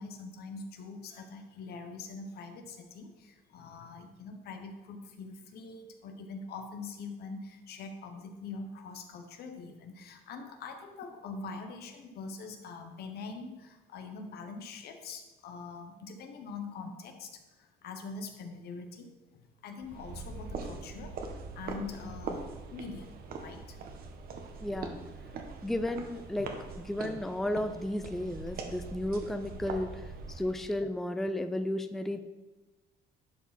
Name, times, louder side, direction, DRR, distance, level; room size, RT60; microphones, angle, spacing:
voice 1, 0.0-21.1 21.5-22.4 22.7-23.8 26.4-26.5 29.6-29.8, left 4 dB, 70° left, 5 dB, 1.2 m, -44 dB
sound 1, 19.8-30.7, right 4 dB, 60° right, 1.1 m, -42 dB
voice 2, 24.6-25.0 25.6-26.5 26.9-32.2, left 1 dB, ahead, 9 dB, 0.4 m, -33 dB
11.0 x 4.8 x 4.3 m, 1.2 s
cardioid pair, 110°, 17 cm